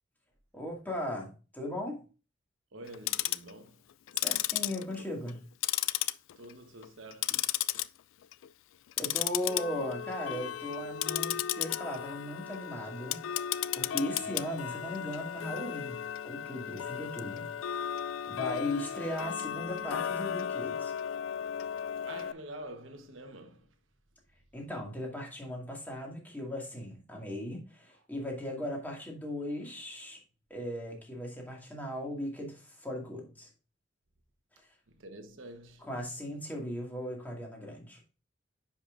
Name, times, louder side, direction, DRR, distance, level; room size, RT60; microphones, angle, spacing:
voice 1, 0.5-2.0 4.2-5.4 9.0-13.2 13.7-17.5 18.2-20.9 24.5-30.2 30.5-33.5 35.8-38.0, left 1 dB, 10° left, 2.1 m, -38 dB
voice 2, 2.7-3.8 6.4-7.4 22.1-23.7 34.9-35.9, right 1 dB, 90° right, 1.2 m, -47 dB
Tick-tock, 2.9-3.5 4.1-5.4 5.6-6.5 6.8-7.9 8.2-8.5 8.9-22.3, left 11 dB, 85° left, 0.3 m, -34 dB
9.9 x 5.3 x 2.5 m
head